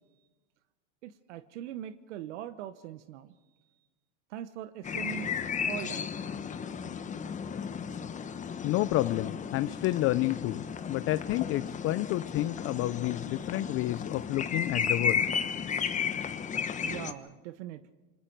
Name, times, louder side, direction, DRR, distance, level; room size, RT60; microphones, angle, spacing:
voice 1, 1.0-3.3 4.3-5.3 5.7-6.2 16.8-17.9, right 12 dB, 80° right, 12 dB, 1.1 m, -41 dB
sound 1, 4.8-17.1, left 7 dB, 20° left, 1.1 m, -34 dB
voice 2, 8.6-15.3, left 16 dB, 40° left, 14 dB, 0.6 m, -30 dB
27.5 x 24.0 x 4.6 m, 1.2 s
supercardioid pair, 130°, 35 cm